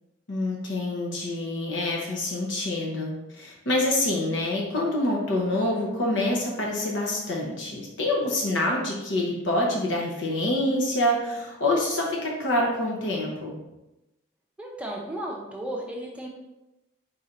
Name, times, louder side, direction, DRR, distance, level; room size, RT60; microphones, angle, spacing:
voice 1, 0.3-13.5, left 1 dB, 80° left, -2 dB, 0.8 m, -26 dB
voice 2, 14.6-16.3, right 1 dB, 5° right, -2 dB, 0.6 m, -34 dB
4.1 x 2.6 x 4.4 m, 0.96 s
head